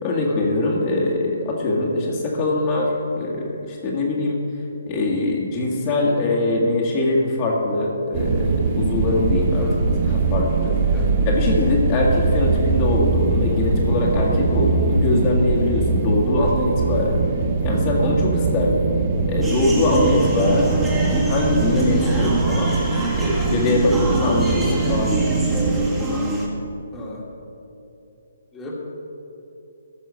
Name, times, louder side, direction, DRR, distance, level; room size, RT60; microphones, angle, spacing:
voice 1, 0.0-4.4 4.9-17.2 17.6-18.8 19.3-22.7 23.1-25.9, left 2 dB, 30° left, -3 dB, 1.7 m, -22 dB
sound 1, 8.1-25.9, right 4 dB, 40° right, 1.0 m, -22 dB
sound 2, 19.4-26.5, right 1 dB, 10° right, 1.9 m, -27 dB
voice 2, 26.9-27.2 28.5-28.7, left 1 dB, 10° left, -4 dB, 1.8 m, -36 dB
14.5 x 5.5 x 6.4 m, 2.9 s
figure-of-eight pair, 145°, 0 cm